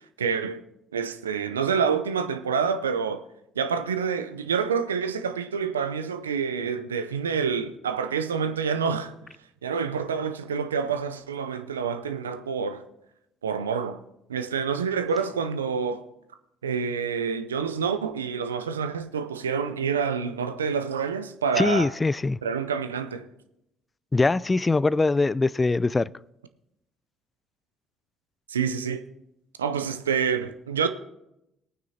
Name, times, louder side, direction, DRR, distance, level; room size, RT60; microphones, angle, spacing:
voice 1, 0.2-0.6 0.9-3.2 3.6-9.1 9.6-12.8 13.4-14.0 14.3-16.0 16.6-21.9 22.4-23.2 28.5-29.0 29.6-30.9, right 6 dB, 90° right, 0.5 m, -27 dB
voice 2, 21.6-22.4 24.1-26.1, left 3 dB, 25° left, 0.3 m, -22 dB
19.5 x 9.2 x 2.8 m
hypercardioid pair, 50°, 0 cm